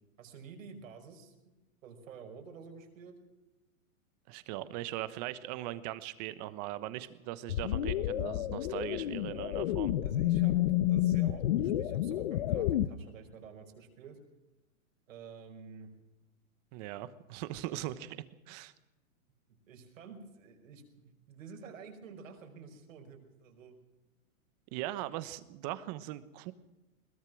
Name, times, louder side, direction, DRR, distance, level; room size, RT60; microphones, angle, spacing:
voice 1, 0.2-1.5 1.8-3.2 10.0-10.6 10.9-14.2 15.1-15.9 17.7-17.8 19.7-23.8, right 6 dB, 65° right, 4 dB, 5.5 m, -50 dB
voice 2, 4.3-9.9 16.7-18.2 18.5-18.7 24.7-26.5, right 14 dB, 30° right, 15 dB, 1.2 m, -39 dB
sound 1, 7.5-12.9, left 13 dB, 40° left, 0.9 m, -30 dB
22.0 x 19.5 x 6.2 m, 1.0 s
hypercardioid pair, 160°, 42 cm